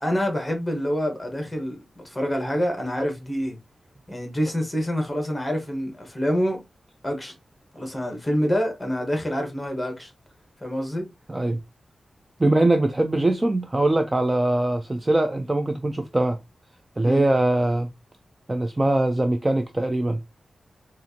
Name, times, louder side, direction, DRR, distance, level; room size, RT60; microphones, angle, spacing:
voice 1, 0.0-3.6 4.1-6.6 7.0-7.3 7.7-10.1 10.6-11.1 17.0-17.2, equal, 10° left, 1.1 m, -26 dB
voice 2, 11.3-11.6 12.4-16.4 17.0-17.9 18.5-20.2, right 2 dB, 20° right, 0.3 m, -22 dB
4.3 x 2.4 x 2.7 m
wide cardioid pair, 165°, 0 cm